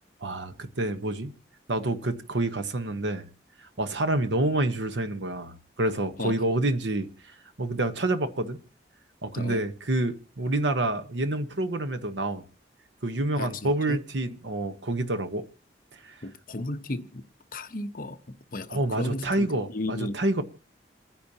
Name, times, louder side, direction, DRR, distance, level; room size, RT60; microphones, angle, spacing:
voice 1, 0.2-1.3 1.7-3.3 3.8-7.1 7.6-8.6 9.2-12.4 13.0-15.4 16.0-16.2 18.7-20.4, right 2 dB, 90° right, 1.1 m, -28 dB
voice 2, 13.4-14.0 16.2-17.2 17.5-18.2 18.5-20.2, left 2 dB, 50° left, 1.0 m, -34 dB
28.5 x 10.0 x 2.9 m
head